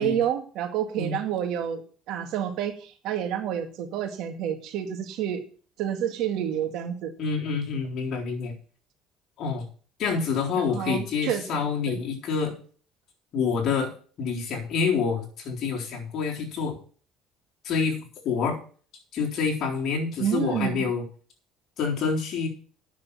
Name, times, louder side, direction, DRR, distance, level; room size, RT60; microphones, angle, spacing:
voice 1, 0.0-1.8 2.1-5.4 5.8-7.1 10.7-11.4 11.9-12.0 20.2-20.8, right 10 dB, 70° right, 6 dB, 2.1 m, -29 dB
voice 2, 7.2-8.5 9.4-9.6 10.0-12.6 13.3-13.9 14.2-16.8 17.6-18.0 18.2-18.6 19.1-21.0 21.8-22.5, left 5 dB, 55° left, -1 dB, 3.8 m, -27 dB
9.6 x 6.8 x 7.1 m, 0.42 s
cardioid pair, 115°, 0 cm